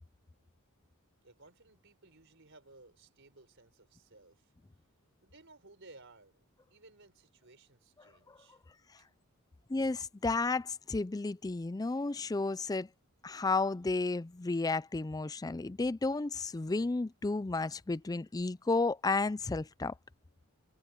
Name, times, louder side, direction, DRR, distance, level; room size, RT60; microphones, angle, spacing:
voice 1, 1.2-4.5 5.2-6.4 6.7-8.6 9.0-9.1, right 2 dB, 55° right, 4.7 m, -59 dB
voice 2, 9.7-12.9 13.2-19.9, left 3 dB, 15° left, 0.4 m, -32 dB
head